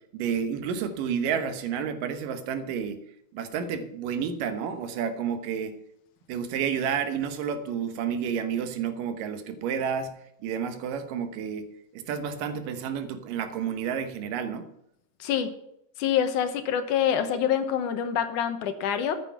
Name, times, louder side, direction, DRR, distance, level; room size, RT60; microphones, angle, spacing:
voice 1, 0.1-3.0 3.3-5.7 6.3-14.7, right 7 dB, 90° right, 9 dB, 2.8 m, -30 dB
voice 2, 16.0-19.1, left 9 dB, 70° left, 9 dB, 2.5 m, -26 dB
14.0 x 8.3 x 5.8 m, 0.79 s
omnidirectional pair, 3.7 m